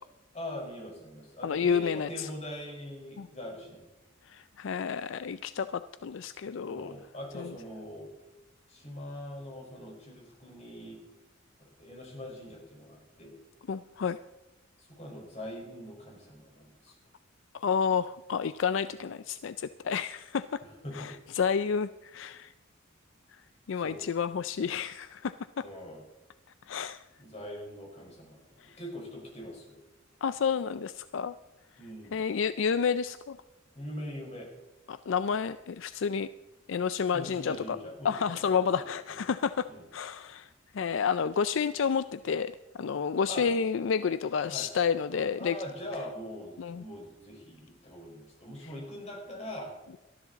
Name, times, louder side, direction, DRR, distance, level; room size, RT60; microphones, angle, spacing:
voice 1, 0.3-3.8 6.6-8.1 8.7-11.0 11.6-13.3 14.8-16.9 20.6-21.1 23.8-24.0 25.6-26.0 27.2-29.8 31.8-32.2 33.7-34.5 37.1-39.2 39.7-39.9 43.3-43.4 44.5-44.7 45.4-49.7, left 1 dB, 35° left, 0 dB, 5.0 m, -42 dB
voice 2, 1.4-2.3 3.2-3.3 4.3-6.9 7.3-7.5 13.7-14.2 17.5-20.6 20.9-22.5 23.3-23.4 23.7-25.6 26.7-27.0 28.6-28.8 30.2-31.3 32.1-33.4 34.9-36.3 36.7-37.8 38.0-45.6 46.6-46.8, left 6 dB, 65° left, 13 dB, 0.4 m, -30 dB
19.0 x 13.0 x 4.1 m, 1.0 s
head